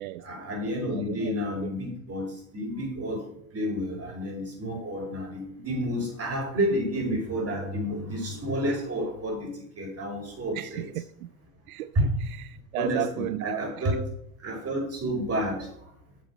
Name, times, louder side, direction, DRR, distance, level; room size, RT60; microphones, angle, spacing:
voice 1, 0.2-3.2 3.5-10.9 11.9-12.1 12.7-13.9 14.4-15.8, equal, 35° right, 5.1 m, -30 dB
voice 2, 0.9-1.3 1.6-1.7 4.6-4.8 10.5-11.3 11.7-13.6, right 14 dB, 85° right, 0.6 m, -34 dB
8.2 x 7.3 x 6.1 m
hypercardioid pair, 85°, 42 cm